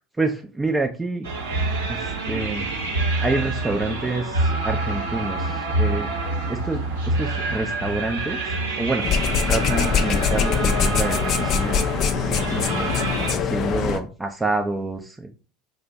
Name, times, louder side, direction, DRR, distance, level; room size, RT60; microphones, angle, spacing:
voice 1, 0.2-1.3 1.9-2.7 3.2-6.1 6.5-9.1 9.5-11.9 12.2-15.3, right 2 dB, 15° right, 4 dB, 0.4 m, -28 dB
sound 1, 1.2-13.3, right 2 dB, 80° right, 0.9 m, -27 dB
sound 2, 9.0-14.0, left 6 dB, 50° left, 0.4 m, -23 dB
2.5 x 2.1 x 3.8 m, 0.35 s
hypercardioid pair, 75°, 0 cm